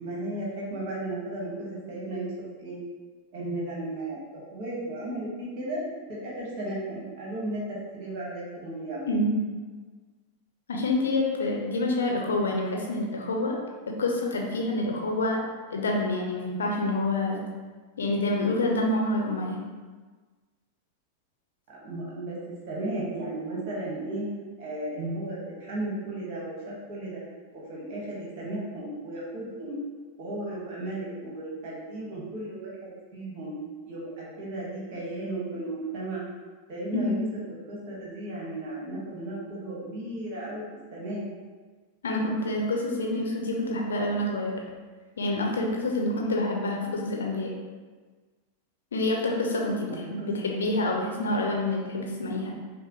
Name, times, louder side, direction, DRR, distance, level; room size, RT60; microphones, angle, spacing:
voice 1, 0.0-2.3 2.6-2.8 3.3-5.8 6.1-9.0 21.7-22.4 22.7-24.2 24.6-27.2 27.5-29.8 30.2-33.5 33.8-36.2 36.7-37.2 37.7-40.6 40.9-41.2 49.9-50.3 50.7-50.8, right 1 dB, 45° right, -5 dB, 1.4 m, -35 dB
voice 2, 9.1-9.4 10.7-13.5 13.9-15.4 15.7-17.4 18.0-19.6 36.9-37.3 42.0-44.6 45.2-47.5 48.9-52.5, left 2 dB, 65° left, 0 dB, 0.6 m, -27 dB
5.6 x 2.1 x 2.9 m, 1.4 s
figure-of-eight pair, 90°, 0 cm